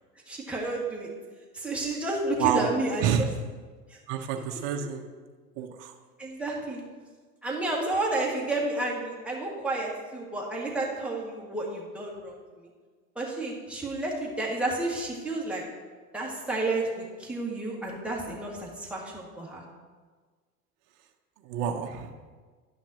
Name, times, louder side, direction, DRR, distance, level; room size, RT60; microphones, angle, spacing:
voice 1, 0.3-1.1 1.5-3.3 3.9-4.0 4.5-4.6 6.2-6.8 7.4-12.7 13.2-15.6 16.1-19.6, right 2 dB, 5° right, -4 dB, 1.8 m, -31 dB
voice 2, 4.1-5.0 5.6-5.9 21.4-22.1, right 8 dB, 50° right, 4 dB, 0.8 m, -28 dB
11.0 x 5.8 x 2.9 m, 1.4 s
hypercardioid pair, 90°, 45 cm